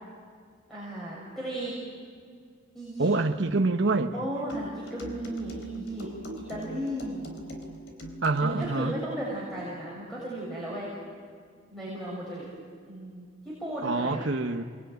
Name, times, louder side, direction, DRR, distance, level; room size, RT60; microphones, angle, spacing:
voice 1, 0.7-1.8 2.7-3.1 4.1-7.3 8.4-10.9 11.7-12.5 12.9-14.4, right 1 dB, ahead, -7 dB, 6.9 m, -35 dB
voice 2, 3.0-4.1 8.2-9.0 13.8-14.6, right 3 dB, 60° right, 6 dB, 1.2 m, -26 dB
sound 1, 4.5-8.8, equal, 60° left, 3.9 m, -42 dB
29.0 x 22.0 x 9.3 m, 2.1 s
head